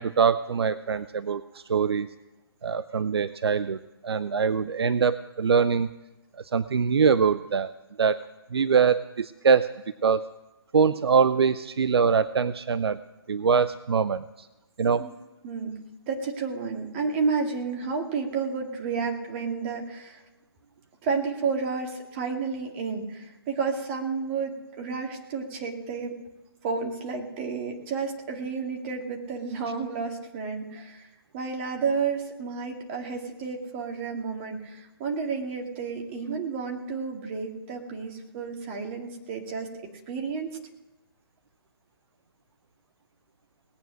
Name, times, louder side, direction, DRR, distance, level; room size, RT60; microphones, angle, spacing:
voice 1, 0.0-2.1 2.6-5.9 6.5-7.7 8.0-8.2 8.5-10.3 10.7-13.0 13.3-14.5 14.8-15.0, right 6 dB, 80° right, 15 dB, 0.5 m, -23 dB
voice 2, 15.4-15.8 16.1-20.2 21.0-26.2 26.6-39.7 40.1-40.6, right 5 dB, 30° right, 2 dB, 2.1 m, -31 dB
18.5 x 9.3 x 6.3 m, 1.1 s
hypercardioid pair, 150°, 13 cm